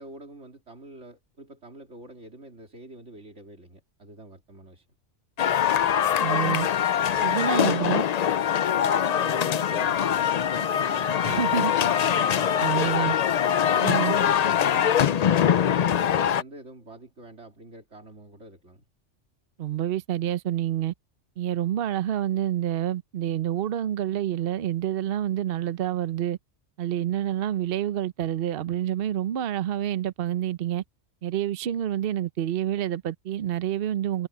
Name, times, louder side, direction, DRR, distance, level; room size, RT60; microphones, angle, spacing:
voice 1, 0.0-4.9 8.7-13.2 13.6-18.8, right 2 dB, 80° right, 3.9 m, -45 dB
sound 1, 5.4-16.4, left 9 dB, 60° left, 0.4 m, -23 dB
voice 2, 6.2-6.7 7.2-8.0 11.2-11.7 12.6-13.1 13.8-14.1 19.6-20.9 21.4-26.4 26.8-30.8 31.2-34.3, right 11 dB, 60° right, 0.9 m, -28 dB
omnidirectional pair, 1.2 m